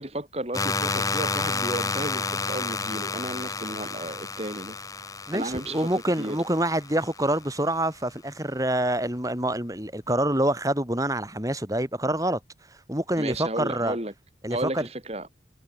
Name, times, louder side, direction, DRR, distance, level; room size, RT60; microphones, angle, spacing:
voice 1, 0.0-4.8 5.3-5.9 6.2-6.4 13.2-14.1 14.5-15.3, right 1 dB, 35° right, 4.2 m, -33 dB
sound 1, 0.5-7.4, left 3 dB, 20° left, 5.1 m, -31 dB
voice 2, 5.3-12.4 12.9-14.0 14.4-14.8, right 1 dB, 20° right, 5.3 m, -26 dB
head